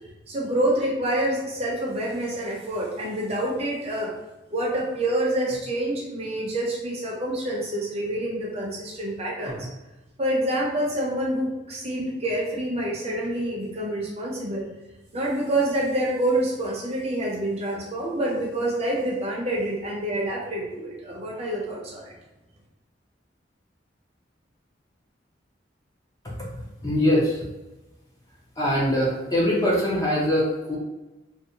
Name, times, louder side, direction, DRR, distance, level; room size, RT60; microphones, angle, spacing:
voice 1, 0.3-4.1 4.5-9.7 10.2-14.7 15.1-22.1, right 1 dB, 35° right, -3 dB, 0.6 m, -27 dB
voice 2, 26.8-27.5 28.6-30.8, left 1 dB, 20° left, -4 dB, 0.5 m, -23 dB
2.5 x 2.1 x 2.7 m, 1.0 s
head